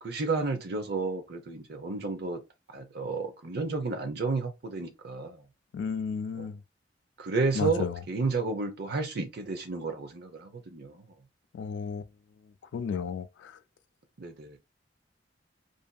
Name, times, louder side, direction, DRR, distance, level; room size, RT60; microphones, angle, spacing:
voice 1, 0.0-2.4 2.7-5.4 6.4-6.5 7.2-11.1 14.2-14.6, right 3 dB, 65° right, 0.7 m, -32 dB
voice 2, 5.7-6.6 7.5-8.0 11.5-12.0 12.4-13.6, left 6 dB, 75° left, 0.3 m, -33 dB
2.6 x 2.6 x 2.2 m
head